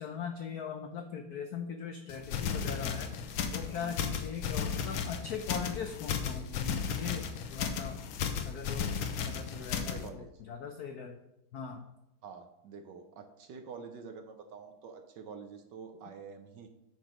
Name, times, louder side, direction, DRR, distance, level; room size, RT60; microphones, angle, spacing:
voice 1, 0.0-3.2 3.5-8.0 8.4-9.0 9.3-11.2 11.5-11.8, left 7 dB, 85° left, 6 dB, 0.8 m, -40 dB
sound 1, 2.1-10.1, left 7 dB, 70° left, 1.4 m, -35 dB
sound 2, 2.5-4.9, left 2 dB, 50° left, 1.0 m, -52 dB
voice 2, 3.8-4.2 9.9-10.3 12.2-16.7, right 5 dB, 65° right, 6 dB, 1.2 m, -47 dB
9.0 x 6.1 x 5.0 m, 0.91 s
omnidirectional pair, 2.4 m